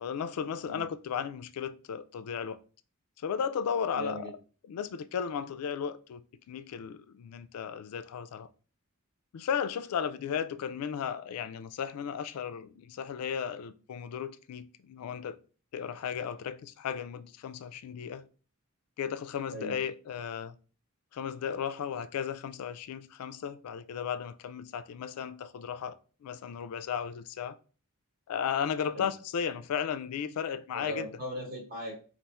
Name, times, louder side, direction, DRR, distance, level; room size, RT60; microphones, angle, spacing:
voice 1, 0.0-2.6 3.2-4.3 4.7-8.5 9.3-15.4 15.7-18.3 19.0-20.6 21.1-27.6 28.3-31.1, left 7 dB, 90° left, 0.3 m, -35 dB
voice 2, 3.9-4.3 19.5-19.8 28.9-29.1 30.7-32.0, equal, 40° right, 1.0 m, -39 dB
4.1 x 2.5 x 2.3 m
head